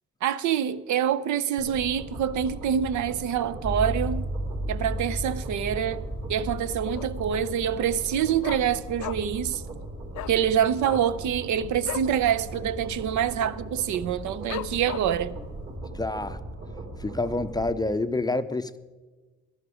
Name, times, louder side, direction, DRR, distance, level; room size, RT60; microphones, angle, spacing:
voice 1, 0.2-4.3 4.7-9.6 10.3-15.4, right 9 dB, 75° right, 0.6 m, -26 dB
sound 1, 1.6-17.7, right 1 dB, 50° right, 4.1 m, -39 dB
sound 2, 3.6-9.0, right 1 dB, 15° right, 1.5 m, -34 dB
Dog, 6.9-7.4 7.7-7.8 8.0-9.5 9.7-9.8 10.1-10.4 10.7-12.2 12.5-12.7 12.9-13.4 13.8-13.9 14.5-15.3 15.8-15.9, left 14 dB, 70° left, 0.5 m, -37 dB
voice 2, 15.9-16.4 17.0-18.8, left 2 dB, 15° left, 0.5 m, -28 dB
13.0 x 12.0 x 4.9 m
cardioid pair, 90°, 30 cm